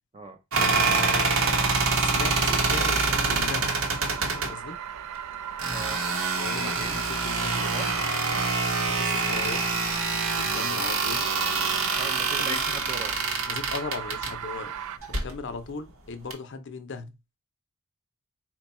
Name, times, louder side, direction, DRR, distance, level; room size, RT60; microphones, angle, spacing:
sound 1, 0.5-4.5 5.6-14.3 15.0-15.3 16.3-16.4, right 4 dB, 70° right, 0.9 m, -26 dB
voice 1, 0.6-1.7 1.9-3.8 4.3-4.8 6.4-7.6 8.9-9.6 10.4-11.2 12.4-12.8 13.5-14.7 15.1-17.1, left 4 dB, 55° left, 0.6 m, -37 dB
sound 2, 0.7-15.0, right 8 dB, 90° right, 0.4 m, -39 dB
voice 2, 5.7-6.0 6.6-7.0 7.3-7.9 12.0-13.2, right 3 dB, 25° right, 0.5 m, -38 dB
4.4 x 2.2 x 4.1 m
head